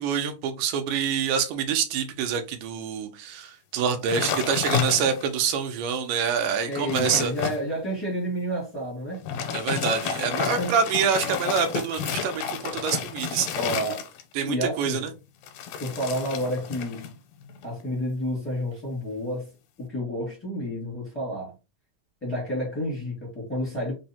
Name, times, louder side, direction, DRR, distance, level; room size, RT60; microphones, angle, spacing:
voice 1, 0.0-7.3 9.5-13.7 14.3-15.1, right 7 dB, 80° right, 2.2 m, -26 dB
sound 1, 4.1-5.4 5.9-6.0 6.5-7.6 9.1-14.4 15.4-17.1 17.4-17.8, left 7 dB, 85° left, 2.2 m, -31 dB
voice 2, 6.7-9.2 10.6-10.8 13.5-14.1 14.4-15.1 15.8-17.1 17.6-19.5 19.8-21.5 22.2-23.9, equal, 10° left, 0.6 m, -30 dB
5.2 x 2.1 x 2.7 m
omnidirectional pair, 3.8 m